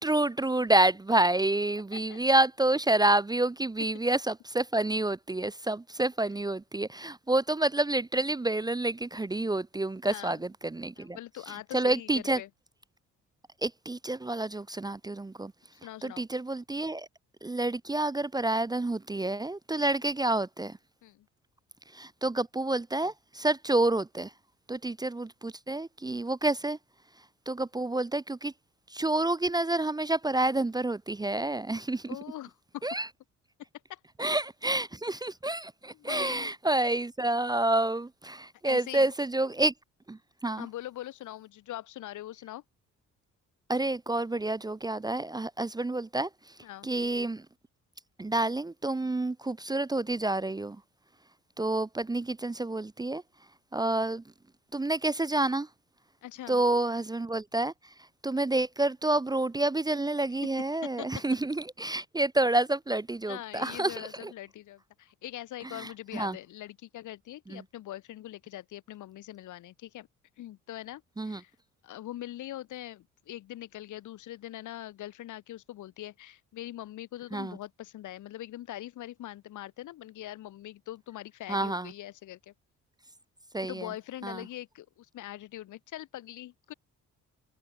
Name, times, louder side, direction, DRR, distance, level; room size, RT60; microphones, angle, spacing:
voice 1, 0.0-11.2 11.5-12.4 13.6-15.5 16.0-17.1 17.4-20.8 21.9-24.3 24.7-26.8 27.5-28.5 28.9-32.2 32.8-33.1 34.2-39.7 40.1-40.7 43.7-46.3 46.8-47.5 48.2-50.8 51.6-53.2 53.7-54.2 54.7-55.7 56.5-57.7 58.2-64.3 65.6-66.4 67.5-67.6 71.2-71.4 77.3-77.6 81.5-81.9 83.5-83.9 84.2-84.4, right 2 dB, 15° right, 0.6 m, -28 dB
voice 2, 10.0-10.4 11.0-12.5 15.7-16.2 19.7-19.9 21.0-21.3 32.1-32.8 33.9-34.0 35.9-36.5 38.6-39.1 40.6-42.6 46.6-46.9 56.2-56.6 61.0-61.1 63.3-70.1 70.4-71.5 71.8-82.5 83.6-86.7, left 14 dB, 80° left, 2.4 m, -42 dB
cardioid pair, 90°, 30 cm